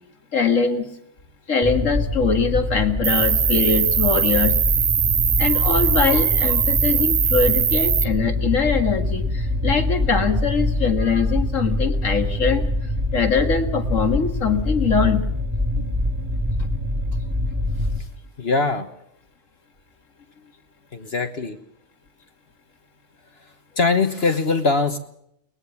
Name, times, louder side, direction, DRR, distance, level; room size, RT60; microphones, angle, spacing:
voice 1, 0.3-0.9 1.5-4.6 5.4-12.7 13.1-15.2, left 5 dB, 70° left, 6 dB, 2.2 m, -22 dB
sound 1, 1.6-18.0, left 1 dB, 10° right, 1.9 m, -24 dB
Cricket, 3.0-8.0, right 8 dB, 85° right, 1.4 m, -21 dB
voice 2, 18.4-18.9 20.9-21.6 23.7-25.0, left 4 dB, 50° left, 7 dB, 1.5 m, -22 dB
22.5 x 20.0 x 7.1 m, 0.75 s
omnidirectional pair, 1.4 m